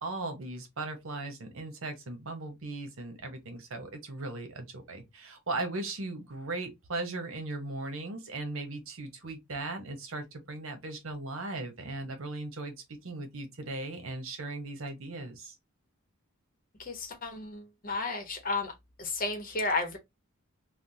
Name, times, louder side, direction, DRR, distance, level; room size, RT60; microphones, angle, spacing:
voice 1, 0.0-15.5, right 2 dB, 70° right, 0.9 m, -38 dB
voice 2, 16.8-18.7 19.0-20.0, left 3 dB, 40° left, 0.9 m, -33 dB
3.4 x 2.2 x 2.7 m
head